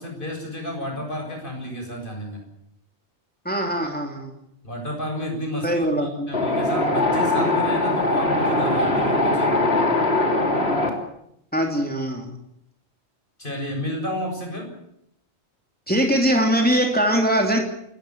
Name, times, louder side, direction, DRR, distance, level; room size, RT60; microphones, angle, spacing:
voice 1, 0.0-2.4 4.6-9.5 13.4-14.7, equal, 50° left, 2 dB, 7.5 m, -31 dB
voice 2, 3.4-4.3 5.6-6.3 11.5-12.3 15.9-17.6, equal, 10° left, 2 dB, 3.1 m, -21 dB
Wind, 6.3-10.9, left 2 dB, 65° left, 3.7 m, -21 dB
28.5 x 14.5 x 9.4 m, 0.77 s
omnidirectional pair, 1.1 m